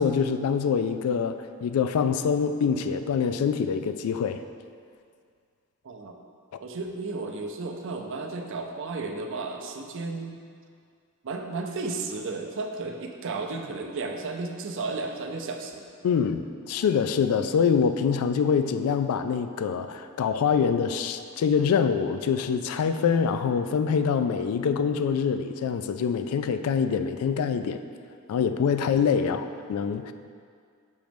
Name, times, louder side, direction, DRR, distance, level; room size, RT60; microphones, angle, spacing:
voice 1, 0.0-4.4 16.0-27.8 28.3-30.1, left 6 dB, 85° left, 10 dB, 0.3 m, -25 dB
voice 2, 5.8-6.2 6.6-10.4 11.2-15.9 29.2-29.3, right 3 dB, 60° right, 3 dB, 0.5 m, -33 dB
6.2 x 3.1 x 5.1 m, 2.2 s
head